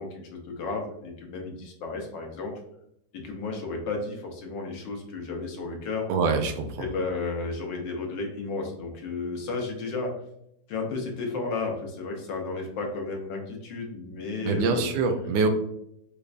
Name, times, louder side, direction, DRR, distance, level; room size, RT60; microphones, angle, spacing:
voice 1, 0.0-2.5 3.1-6.1 6.8-10.1 10.7-14.9, left 3 dB, 80° left, 2 dB, 1.4 m, -33 dB
voice 2, 6.1-6.9 14.4-15.5, right 4 dB, 90° right, 5 dB, 1.3 m, -25 dB
5.0 x 2.2 x 2.4 m, 0.77 s
omnidirectional pair, 2.0 m